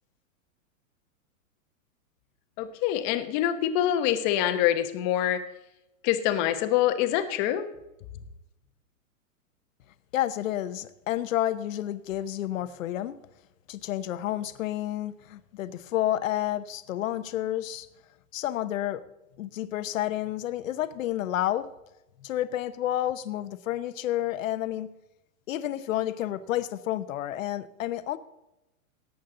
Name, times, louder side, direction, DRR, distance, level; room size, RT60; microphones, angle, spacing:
voice 1, 2.6-5.4 6.0-7.7, left 11 dB, 30° left, 9 dB, 1.0 m, -25 dB
voice 2, 10.1-13.2 13.7-17.9 18.3-19.0 19.4-21.7 22.2-24.9 25.5-28.2, left 13 dB, 65° left, 12 dB, 1.0 m, -30 dB
17.5 x 8.5 x 3.8 m, 0.93 s
hypercardioid pair, 150°, 42 cm